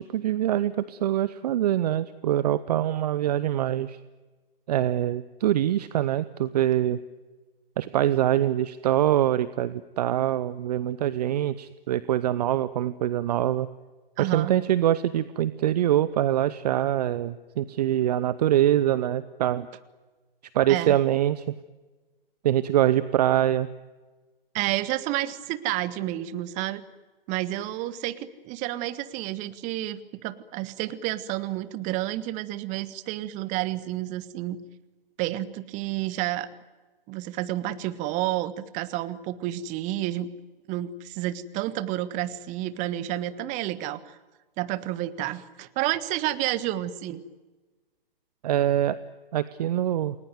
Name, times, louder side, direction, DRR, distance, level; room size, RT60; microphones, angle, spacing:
voice 1, 0.0-4.0 4.7-7.0 7.8-13.7 14.2-19.7 20.5-21.5 22.4-23.7 48.4-49.0 49.3-50.2, right 12 dB, 45° right, 16 dB, 0.8 m, -24 dB
voice 2, 14.2-14.6 20.7-21.0 24.5-26.8 27.3-34.6 35.2-36.5 37.1-40.3 40.7-44.2 44.6-47.2, right 14 dB, 25° right, 14 dB, 1.5 m, -30 dB
28.5 x 20.0 x 9.3 m, 1.3 s
figure-of-eight pair, 115°, 29 cm